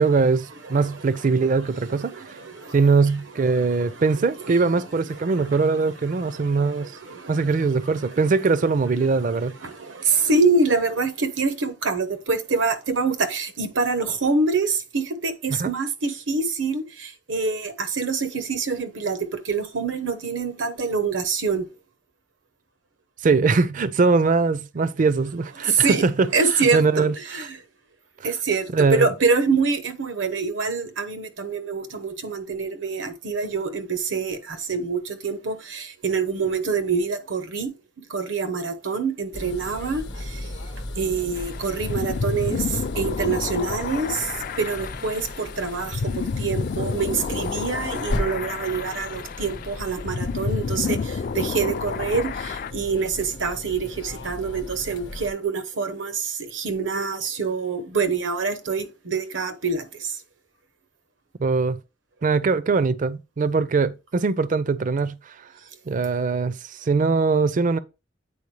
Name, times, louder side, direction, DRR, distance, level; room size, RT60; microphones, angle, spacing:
voice 1, 0.0-2.4 2.7-6.9 7.3-9.5 15.5-15.7 23.2-26.3 26.7-27.1 28.7-29.1 61.4-61.8 62.2-65.3 65.9-67.8, right 4 dB, 45° right, 0.4 m, -21 dB
voice 2, 1.8-2.8 3.4-3.8 4.4-4.7 5.1-5.8 6.1-8.0 9.0-21.7 25.6-26.0 26.3-27.6 28.2-37.7 38.1-40.5 40.9-60.2, right 4 dB, 90° right, 0.9 m, -26 dB
sound 1, 39.3-55.3, left 1 dB, 65° left, 0.8 m, -36 dB
sound 2, 41.4-52.7, left 5 dB, 50° left, 0.3 m, -30 dB
8.4 x 4.3 x 3.2 m
head